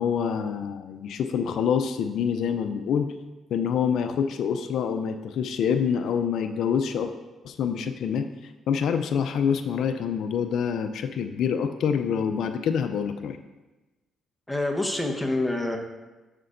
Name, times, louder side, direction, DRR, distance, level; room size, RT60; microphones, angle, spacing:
voice 1, 0.0-3.1 3.5-7.1 7.4-13.4, left 7 dB, 70° left, 7 dB, 0.4 m, -26 dB
voice 2, 14.5-15.8, left 2 dB, 10° left, 2 dB, 1.0 m, -26 dB
11.0 x 6.7 x 2.5 m, 1.1 s
cardioid pair, 90°, 0 cm